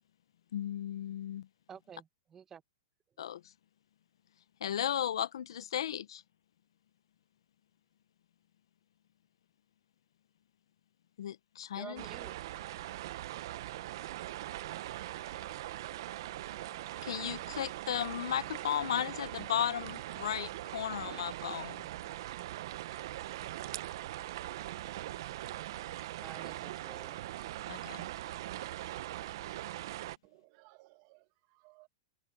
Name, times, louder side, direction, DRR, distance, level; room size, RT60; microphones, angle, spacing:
voice 1, 0.5-1.5 3.2-3.4 4.6-6.2 11.2-12.0 17.0-21.8 27.7-28.1, left 10 dB, 75° left, 0.9 m, -35 dB
voice 2, 1.7-2.6 11.7-12.4 26.2-27.2, right 8 dB, 15° right, 1.2 m, -49 dB
sound 1, 12.0-30.2, right 14 dB, 55° right, 0.8 m, -41 dB
voice 3, 30.2-31.9, right 23 dB, 40° right, 2.2 m, -61 dB
hypercardioid pair, 155°, 3 cm